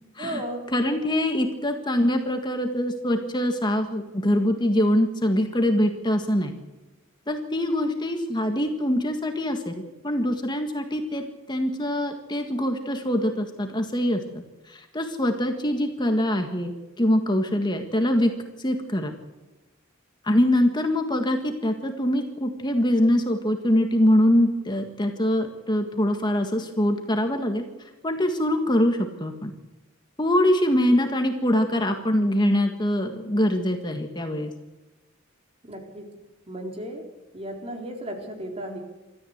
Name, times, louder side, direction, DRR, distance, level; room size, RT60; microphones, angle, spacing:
voice 1, 0.2-0.6 35.6-36.0 36.5-37.0 37.3-38.8, right 1 dB, 30° right, 2 dB, 3.9 m, -34 dB
voice 2, 0.7-6.5 7.3-11.2 11.5-16.7 17.0-18.3 18.6-19.1 20.2-27.6 28.0-29.5 30.2-34.5, left 1 dB, 20° left, 5 dB, 1.7 m, -23 dB
26.5 x 14.0 x 8.1 m, 1.1 s
head